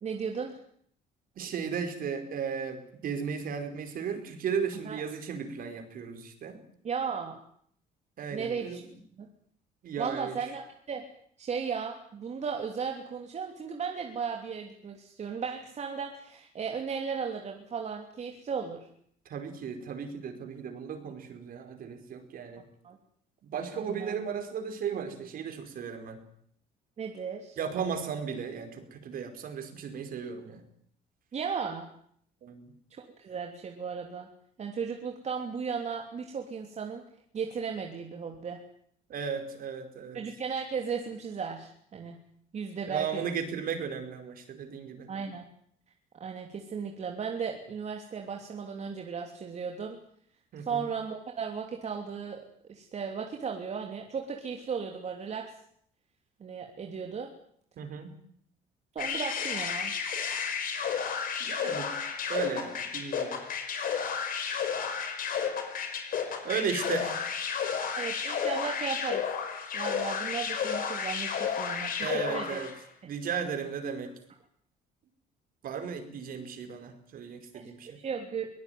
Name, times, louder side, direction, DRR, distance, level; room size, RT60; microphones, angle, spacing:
voice 1, 0.0-0.6 4.8-5.0 6.8-7.4 8.3-8.8 9.2-9.3 10.0-11.0 11.4-18.9 22.8-23.0 23.7-24.1 27.0-27.6 31.3-31.9 32.9-34.3 34.6-37.0 37.3-38.6 40.1-42.2 42.5-43.2 45.1-45.4 46.2-50.0 50.7-52.4 52.7-55.5 56.4-57.3 58.9-59.9 68.0-69.2 69.7-72.6 77.5-77.7 78.0-78.5, right 6 dB, 40° right, 2 dB, 3.1 m, -35 dB
voice 2, 1.4-6.6 8.2-8.8 9.8-10.4 19.3-22.7 23.4-26.2 27.6-30.6 32.4-32.7 39.1-40.2 42.9-45.1 50.5-50.9 57.8-58.2 61.4-61.9 62.3-63.4 66.4-67.3 72.0-72.7 73.1-74.1 75.6-78.0, right 6 dB, 60° right, 7 dB, 5.0 m, -35 dB
sound 1, 59.0-72.8, left 7 dB, 55° left, 5.3 m, -32 dB
23.0 x 19.0 x 9.4 m, 0.65 s
cardioid pair, 110°, 17 cm